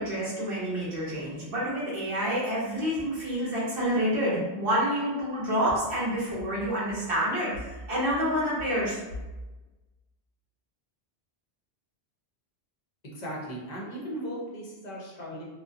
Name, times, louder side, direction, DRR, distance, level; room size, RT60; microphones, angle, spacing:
voice 1, 0.0-9.0, equal, 60° right, -7 dB, 0.9 m, -28 dB
voice 2, 13.0-15.4, equal, 45° left, -4 dB, 0.7 m, -37 dB
2.7 x 2.2 x 2.4 m, 1.1 s
omnidirectional pair, 1.1 m